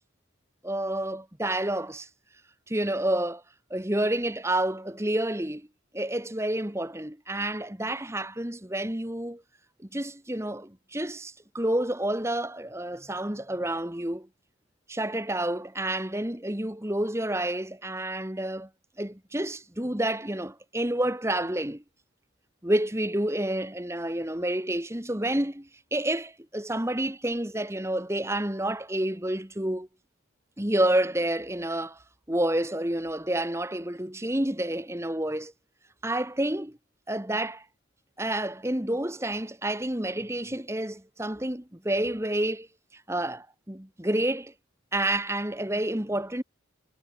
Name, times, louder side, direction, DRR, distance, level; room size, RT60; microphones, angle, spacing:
voice 1, 0.6-2.1 2.7-3.4 3.7-5.7 5.9-9.4 9.9-14.3 14.9-18.7 19.0-21.8 22.6-29.9 30.6-32.0 32.3-35.5 36.0-36.8 37.1-37.6 38.2-42.7 43.1-44.5 44.9-46.4, right 1 dB, 15° right, 1.5 m, -29 dB
head